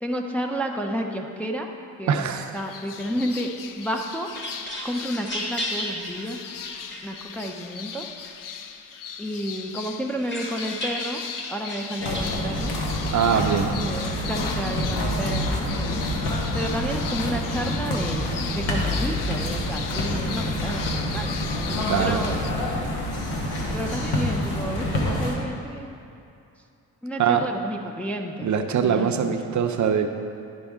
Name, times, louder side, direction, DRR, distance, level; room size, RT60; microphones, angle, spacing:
voice 1, 0.0-1.7 2.0-2.2 2.5-4.3 4.8-6.4 7.0-8.0 9.2-11.2 11.5-12.7 13.7-16.0 16.5-21.4 22.0-22.4 23.7-26.0 27.0-28.5 28.8-29.7, equal, 5° left, 1 dB, 0.4 m, -31 dB
voice 2, 2.1-2.5 13.1-13.7 21.9-22.2 27.2-27.5 28.4-30.1, right 7 dB, 50° right, 6 dB, 0.6 m, -22 dB
sound 1, 2.5-22.5, left 8 dB, 60° left, 0.5 m, -38 dB
sound 2, 3.9-7.5 7.9-8.8 9.2-12.3, left 1 dB, 30° left, 1.7 m, -35 dB
sound 3, 12.0-25.4, left 1 dB, 80° left, 1.3 m, -27 dB
11.0 x 5.2 x 3.6 m, 2.6 s
cardioid pair, 110°, 37 cm